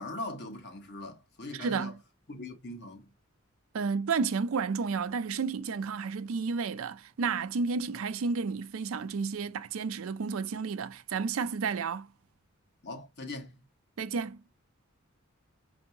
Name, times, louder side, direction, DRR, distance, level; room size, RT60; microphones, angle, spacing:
voice 1, 0.0-1.9 2.3-3.1 12.8-13.6, left 2 dB, 55° left, 1.1 m, -41 dB
voice 2, 1.5-2.0 3.7-12.1 14.0-14.4, right 5 dB, 80° right, 0.4 m, -31 dB
4.7 x 2.7 x 2.6 m
head